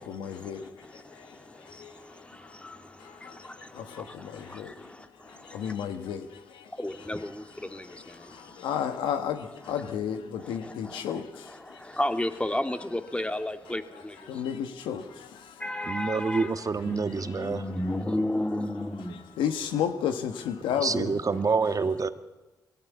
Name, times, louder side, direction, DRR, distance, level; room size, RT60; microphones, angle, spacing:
voice 1, 0.0-1.4 1.7-2.6 3.0-4.9 5.3-6.7 7.9-11.8 14.3-15.6 19.4-21.2, left 8 dB, 85° left, 8 dB, 1.5 m, -33 dB
voice 2, 6.8-7.4 7.7-7.8 12.0-13.8 15.6-16.5 16.9-19.1, left 1 dB, 15° left, 7 dB, 1.9 m, -30 dB
voice 3, 15.9-17.6 20.8-22.1, right 4 dB, 45° right, 10 dB, 1.5 m, -27 dB
21.0 x 17.0 x 8.5 m, 1.1 s
supercardioid pair, 45°, 8 cm